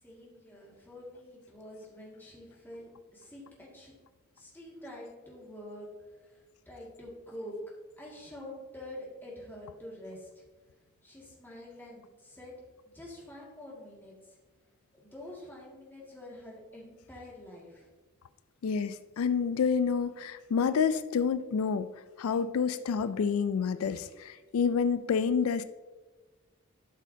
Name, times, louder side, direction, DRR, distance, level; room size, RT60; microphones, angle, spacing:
voice 1, 0.0-3.9 4.3-7.6 8.0-10.4 11.0-12.5 12.9-14.4 14.9-17.9, left 1 dB, 10° left, -4 dB, 2.0 m, -47 dB
voice 2, 18.6-21.9 22.2-25.6, left 6 dB, 85° left, 13 dB, 0.4 m, -28 dB
12.0 x 6.3 x 2.8 m, 1.3 s
head